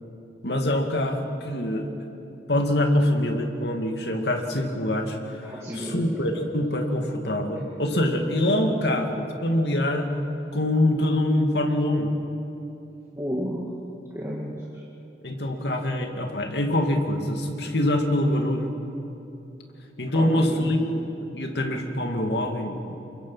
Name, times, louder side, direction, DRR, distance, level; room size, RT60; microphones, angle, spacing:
voice 1, 0.4-1.9 2.5-10.1 10.5-12.1 15.2-18.8 20.0-22.9, left 1 dB, 75° left, 3 dB, 2.4 m, -24 dB
voice 2, 5.4-6.5 13.2-13.7 14.1-14.8 20.1-20.7, equal, 15° right, -5 dB, 2.0 m, -33 dB
28.0 x 22.5 x 5.8 m, 2.9 s
head